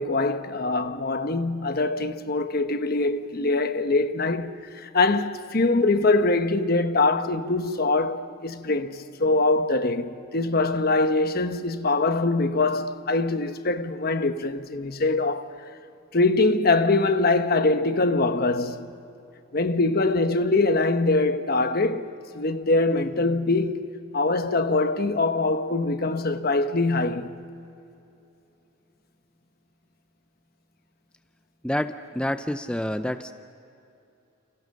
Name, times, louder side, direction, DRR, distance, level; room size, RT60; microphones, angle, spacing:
voice 1, 0.0-15.6 16.1-18.9 19.5-23.8 24.1-27.3, left 3 dB, 50° left, 1.1 m, -23 dB
voice 2, 31.6-33.3, left 1 dB, 5° left, 0.5 m, -28 dB
30.0 x 28.5 x 6.6 m
head